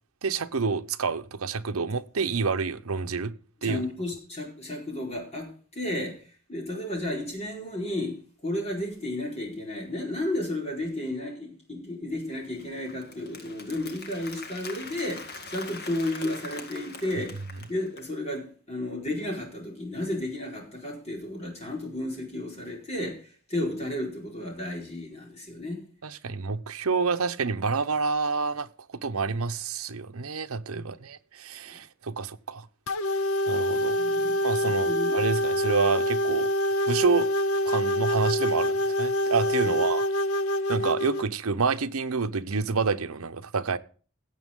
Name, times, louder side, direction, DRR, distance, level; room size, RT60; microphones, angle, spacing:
voice 1, 0.2-3.3 3.6-3.8 26.0-28.7 29.0-32.7 33.5-34.0 34.4-36.5 36.9-37.3 37.7-40.0 40.7-43.8, right 4 dB, 75° right, 0.8 m, -28 dB
voice 2, 3.6-6.2 6.5-17.4 17.7-23.2 23.5-25.8 30.7-30.8 34.0-35.2 39.6-39.7, left 1 dB, 30° left, 4.6 m, -33 dB
Applause, 12.3-18.1, left 3 dB, 50° left, 2.0 m, -43 dB
sound 1, 32.9-41.3, equal, 70° left, 0.7 m, -26 dB
17.0 x 8.2 x 3.7 m
head